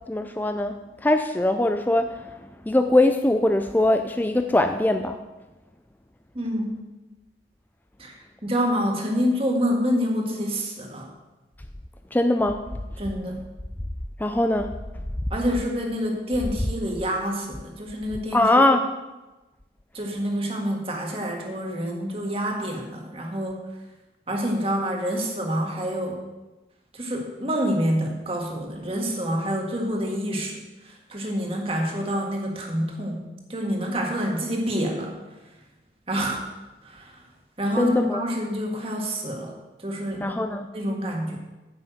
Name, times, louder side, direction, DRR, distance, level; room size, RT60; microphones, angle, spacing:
voice 1, 0.1-5.2 12.1-12.7 14.2-14.7 18.3-18.9 37.8-38.2 40.2-40.7, left 1 dB, 10° left, 6 dB, 0.4 m, -22 dB
voice 2, 6.3-6.8 8.0-11.1 13.0-13.4 15.3-18.4 19.9-23.6 24.3-26.2 26.9-33.2 33.5-35.2 36.1-36.5 36.8-37.2 37.6-39.5 39.8-40.4 40.7-41.4, equal, 30° right, 1 dB, 1.8 m, -27 dB
9.9 x 6.0 x 7.8 m, 1.1 s
head